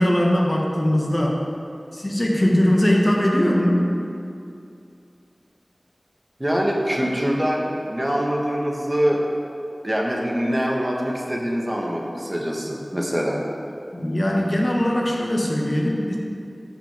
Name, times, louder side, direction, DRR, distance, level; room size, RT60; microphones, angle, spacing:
voice 1, 0.0-1.4 1.9-3.9 13.9-16.2, equal, 40° left, -2 dB, 1.3 m, -20 dB
voice 2, 6.4-9.2 9.8-13.4, equal, 25° right, -2 dB, 1.3 m, -24 dB
13.0 x 5.9 x 3.5 m, 2.6 s
wide cardioid pair, 50°, 0 cm